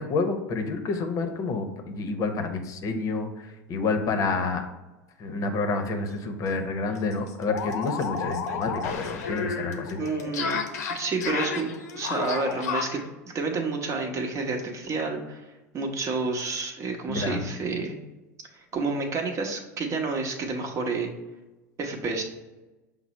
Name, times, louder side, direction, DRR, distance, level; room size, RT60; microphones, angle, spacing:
voice 1, 0.0-4.6 5.2-10.0 17.1-17.5, left 3 dB, 40° left, 6 dB, 0.7 m, -29 dB
sound 1, 6.0-6.2 6.5-6.6 6.9-13.0, left 5 dB, 80° left, 0.6 m, -31 dB
voice 2, 10.0-10.6 10.9-11.7 11.9-15.4 15.7-18.0 18.5-21.1 21.8-22.2, right 4 dB, 35° right, 3 dB, 0.9 m, -29 dB
5.9 x 2.0 x 4.2 m, 1.1 s
hypercardioid pair, 90°, 9 cm